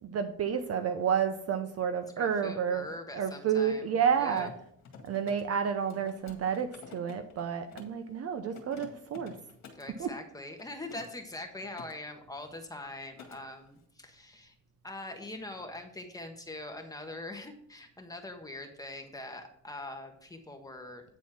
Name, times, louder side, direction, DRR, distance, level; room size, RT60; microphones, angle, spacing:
voice 1, 0.0-2.9 3.1-4.5 5.0-9.3 10.0-10.1, right 7 dB, 45° right, 8 dB, 0.8 m, -30 dB
voice 2, 2.2-4.5 9.7-14.5 14.8-21.0, left 2 dB, 10° left, 4 dB, 1.3 m, -43 dB
Mechanisms, 3.9-8.0 8.4-9.9 10.6-11.9 12.2-12.6 12.9-13.4, left 6 dB, 55° left, 1.9 m, -51 dB
9.3 x 4.2 x 5.9 m, 0.70 s
cardioid pair, 125°, 33 cm